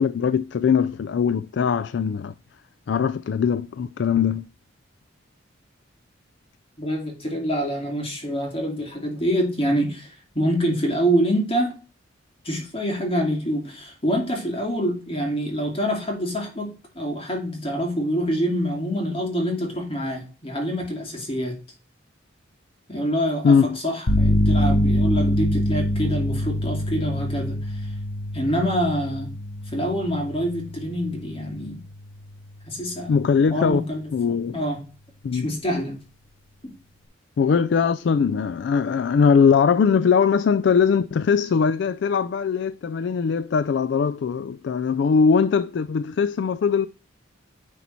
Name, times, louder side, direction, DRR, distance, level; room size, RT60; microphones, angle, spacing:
voice 1, 0.0-2.3 2.9-4.5 23.4-23.8 33.1-33.8 34.1-34.6 35.2-35.5 37.4-46.9, left 6 dB, 60° left, 0.3 m, -21 dB
voice 2, 6.8-11.8 12.4-21.6 22.9-27.9 28.3-29.3 29.7-31.8 32.7-33.2 33.5-34.8 35.3-36.0 36.6-36.7, equal, 30° left, 2.3 m, -26 dB
sound 1, 24.1-31.8, left 1 dB, 85° left, 1.3 m, -24 dB
10.0 x 4.1 x 4.3 m
head